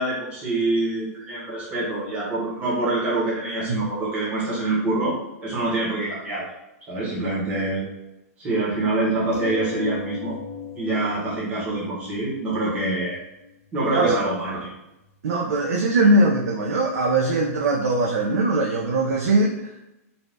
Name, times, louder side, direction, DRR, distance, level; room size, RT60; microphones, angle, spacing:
voice 1, 0.0-5.1 5.4-6.5 6.9-7.8 8.4-10.4 10.7-13.2 13.7-14.7, right 2 dB, 15° right, -7 dB, 0.8 m, -25 dB
sound 1, 9.3-14.3 15.1-15.2 15.5-15.6, left 7 dB, 55° left, 0.8 m, -37 dB
voice 2, 15.2-19.7, right 2 dB, 70° right, -1 dB, 0.4 m, -21 dB
2.6 x 2.2 x 3.2 m, 0.92 s
hypercardioid pair, 165°, 9 cm